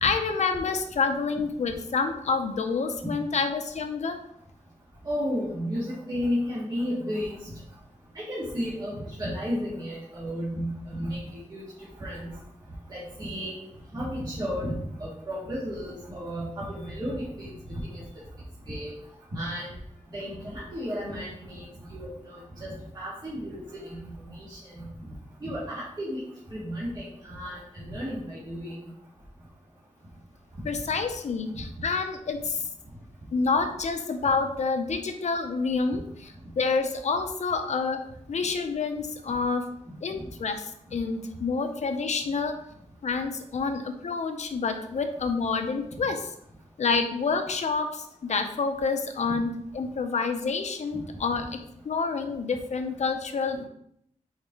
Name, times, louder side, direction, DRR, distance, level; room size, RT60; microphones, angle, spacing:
voice 1, 0.0-4.2 30.6-32.6 33.3-38.0 38.3-39.6 40.0-42.6 43.0-46.3 46.8-51.6 51.8-53.6, left 4 dB, 60° left, 6 dB, 0.7 m, -28 dB
voice 2, 5.0-7.5 8.2-11.6 12.0-12.3 12.9-13.6 13.9-14.7 15.0-18.0 18.7-18.9 19.3-19.7 20.1-22.7 22.9-24.0 24.3-24.6 25.4-26.2 26.5-28.7, equal, 35° right, -8 dB, 1.7 m, -33 dB
4.8 x 4.6 x 4.8 m, 0.72 s
wide cardioid pair, 165°, 13 cm